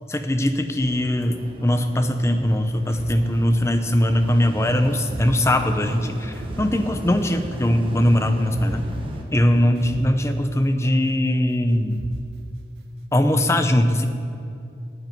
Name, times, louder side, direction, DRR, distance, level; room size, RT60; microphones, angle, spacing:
voice 1, 0.1-8.9 9.3-12.0 13.1-14.1, left 1 dB, 15° left, 7 dB, 0.7 m, -21 dB
sound 1, 0.8-9.2, equal, 30° right, 1.3 m, -35 dB
sound 2, 2.3-4.0 5.0-7.6 8.4-11.0 11.8-13.0, right 2 dB, 70° right, 0.5 m, -39 dB
9.4 x 8.2 x 9.2 m, 2.5 s
head